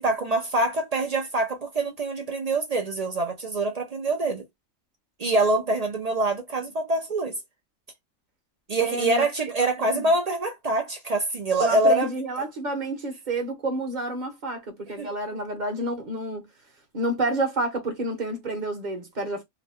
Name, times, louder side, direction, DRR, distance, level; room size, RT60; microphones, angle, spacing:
voice 1, 0.0-4.4 5.2-7.4 8.7-12.1 12.4-12.5 15.0-15.1, right 2 dB, 55° right, 0.4 m, -25 dB
voice 2, 8.8-9.3 9.8-10.1 11.6-16.5 16.9-19.4, right 2 dB, 40° right, 1.0 m, -29 dB
2.9 x 2.1 x 3.4 m
omnidirectional pair, 1.4 m